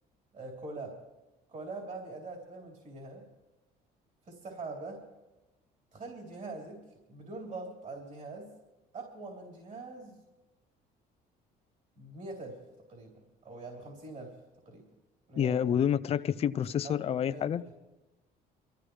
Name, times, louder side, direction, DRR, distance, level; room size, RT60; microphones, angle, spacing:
voice 1, 0.3-1.0 1.5-3.3 4.3-5.0 5.9-6.8 7.1-8.5 8.9-10.2 12.0-12.6 12.9-13.1 13.4-14.4 14.7-14.8 15.3-15.5 16.8-17.7, right 3 dB, 45° right, 0 dB, 3.6 m, -43 dB
voice 2, 15.4-17.6, left 9 dB, 35° left, 14 dB, 0.4 m, -28 dB
24.0 x 14.0 x 3.2 m, 1.0 s
cardioid pair, 110°, 17 cm